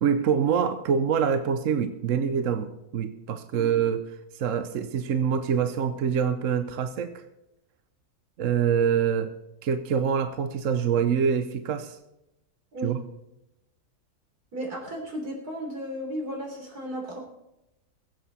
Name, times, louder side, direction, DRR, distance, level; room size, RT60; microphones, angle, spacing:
voice 1, 0.0-4.0 4.3-7.2 8.4-9.3 9.6-12.0 12.8-13.0, right 7 dB, 65° right, 10 dB, 1.1 m, -25 dB
voice 2, 14.5-17.2, equal, 80° right, 0 dB, 3.9 m, -34 dB
21.5 x 8.0 x 4.1 m, 0.91 s
omnidirectional pair, 1.6 m